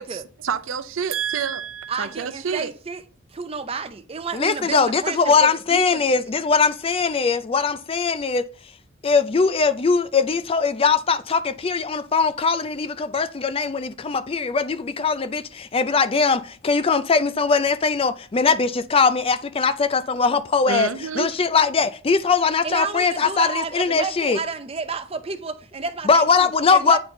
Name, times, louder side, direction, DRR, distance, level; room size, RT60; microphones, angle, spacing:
voice 1, 0.0-2.7 20.7-21.3, right 6 dB, 75° right, 0.6 m, -28 dB
voice 2, 1.9-3.0 3.3-6.0 22.6-27.0, right 4 dB, 30° right, 0.5 m, -31 dB
voice 3, 4.3-8.5 9.0-20.9 21.2-24.4 26.0-27.0, left 5 dB, 25° left, 0.4 m, -21 dB
9.3 x 4.3 x 3.8 m
head